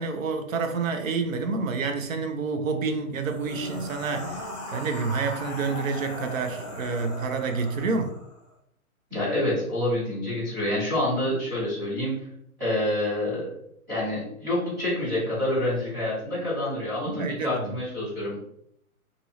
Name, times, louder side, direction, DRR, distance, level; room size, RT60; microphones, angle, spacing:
voice 1, 0.0-8.2 17.1-17.7, right 4 dB, 65° right, 6 dB, 0.7 m, -28 dB
sound 1, 3.1-8.4, left 1 dB, 30° left, 0.8 m, -38 dB
voice 2, 9.1-12.1 12.6-13.5 13.9-18.3, left 1 dB, 5° right, -12 dB, 1.4 m, -27 dB
2.8 x 2.6 x 3.0 m, 0.72 s
hypercardioid pair, 155°, 44 cm